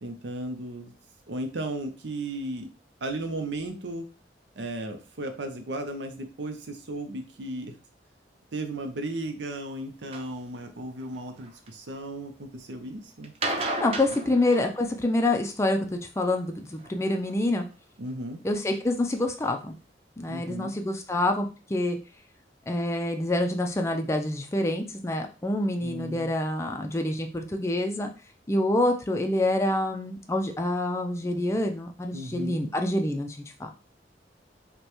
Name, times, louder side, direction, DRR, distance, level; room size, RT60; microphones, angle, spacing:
voice 1, 0.0-0.9 1.3-2.7 3.0-4.0 4.6-7.8 8.5-13.3 18.0-18.4 20.3-20.7 25.8-26.3 32.1-32.7, right 1 dB, 80° right, 5 dB, 0.6 m, -35 dB
sound 1, 10.1-10.3 11.0-11.7 13.2-15.2 16.8-17.4 18.1-18.2 18.7-18.8 19.2-19.3 19.4-19.5, right 2 dB, 35° right, 0.5 m, -33 dB
voice 2, 13.8-17.7 18.4-19.8 20.2-22.0 22.7-28.1 28.5-33.7, left 1 dB, 15° left, 4 dB, 0.4 m, -27 dB
5.1 x 2.2 x 3.0 m, 0.33 s
head